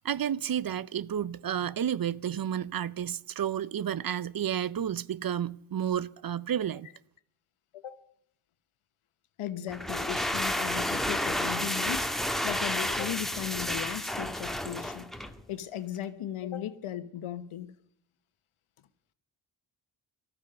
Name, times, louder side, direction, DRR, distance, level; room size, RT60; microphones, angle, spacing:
voice 1, 0.0-6.9, right 9 dB, 45° right, 0.6 m, -31 dB
voice 2, 9.4-15.1 15.5-17.7, left 11 dB, 85° left, 1.3 m, -37 dB
sound 1, 9.7-15.4, left 1 dB, ahead, 1.6 m, -31 dB
18.5 x 13.5 x 5.2 m
cardioid pair, 65°, 49 cm